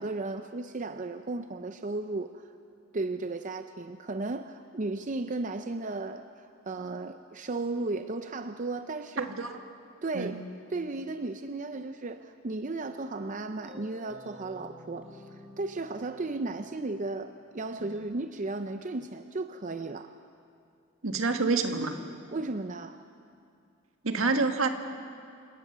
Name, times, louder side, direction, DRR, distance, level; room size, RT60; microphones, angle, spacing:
voice 1, 0.0-2.5 2.9-9.3 10.0-10.4 10.7-20.1 22.3-23.0, right 3 dB, 40° right, 8 dB, 0.6 m, -35 dB
voice 2, 9.2-9.5 10.1-10.4 21.0-22.0 24.0-24.7, right 3 dB, 75° right, 6 dB, 1.6 m, -27 dB
sound 1, 12.8-18.0, left 2 dB, 5° right, 3.7 m, -52 dB
28.5 x 18.0 x 6.9 m, 2.4 s
head